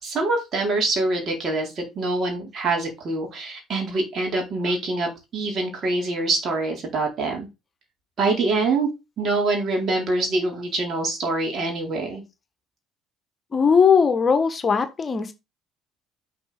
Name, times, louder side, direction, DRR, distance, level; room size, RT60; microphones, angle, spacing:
voice 1, 0.0-7.5 8.2-8.9 9.2-12.2, right 2 dB, 50° right, 4.2 m, -25 dB
voice 2, 13.5-15.3, left 6 dB, 35° left, 1.3 m, -19 dB
6.2 x 5.8 x 4.4 m
hypercardioid pair, 65°, 0 cm